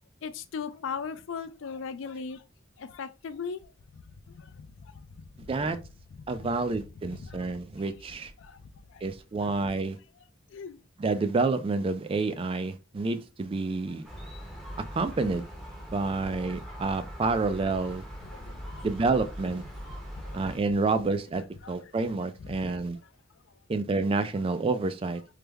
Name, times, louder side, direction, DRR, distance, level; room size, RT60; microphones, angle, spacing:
voice 1, 0.2-2.4 2.8-3.6 4.3-4.7 4.9-5.0 7.3-7.5 8.4-8.6 10.5-10.8 18.3-18.6 20.2-20.4 21.6-21.7 22.5-22.8, left 6 dB, 70° left, 0.4 m, -38 dB
voice 2, 6.3-8.3 9.0-10.0 11.0-14.1 14.9-15.4 15.9-18.0 18.8-19.6 20.3-23.0 23.7-25.2, right 3 dB, 30° right, 0.3 m, -28 dB
Gull seagull, 14.0-20.6, equal, ahead, 0.9 m, -41 dB
3.3 x 2.0 x 3.3 m
head